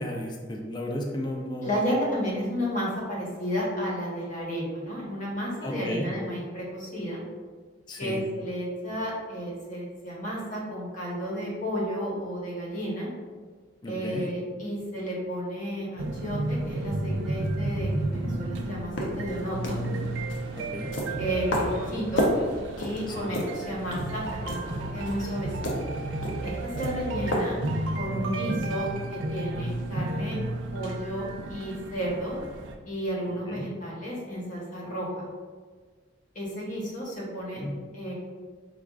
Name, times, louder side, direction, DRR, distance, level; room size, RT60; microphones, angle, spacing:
voice 1, 0.0-1.7 5.6-6.1 7.9-8.2 13.8-14.2 20.6-20.9 23.1-23.3 33.5-33.6 37.6-37.7, left 1 dB, 25° left, 1 dB, 0.4 m, -33 dB
voice 2, 1.6-7.2 8.0-13.1 13.9-19.8 21.2-22.3 22.8-25.7 26.4-27.6 27.9-30.4 30.7-32.4 32.9-35.3 36.3-37.6 37.9-38.1, equal, 45° left, -4 dB, 0.9 m, -32 dB
sound 1, 16.0-32.7, right 2 dB, 75° right, 0.4 m, -32 dB
sound 2, 18.8-28.0, equal, 85° left, 0.6 m, -33 dB
4.6 x 2.3 x 2.3 m, 1.5 s
head